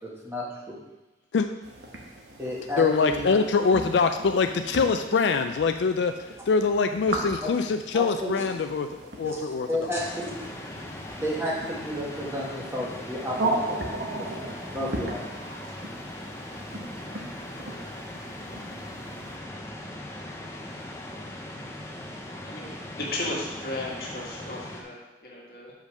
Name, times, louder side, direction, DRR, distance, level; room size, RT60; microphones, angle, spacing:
voice 1, 0.0-0.8 2.4-3.3 7.4-7.5 7.9-8.5 9.2-9.4 9.7-10.4 11.2-14.2 14.7-15.2, equal, 15° right, -4 dB, 1.4 m, -32 dB
sound 1, 1.6-19.4, right 2 dB, 75° right, 1.2 m, -37 dB
voice 2, 2.8-10.0, left 5 dB, 80° left, 7 dB, 0.4 m, -24 dB
sound 2, 9.9-24.8, left 1 dB, 15° left, 0.8 m, -39 dB
voice 3, 22.4-25.7, left 2 dB, 55° left, -3 dB, 1.7 m, -35 dB
5.3 x 5.1 x 6.2 m, 1.1 s
head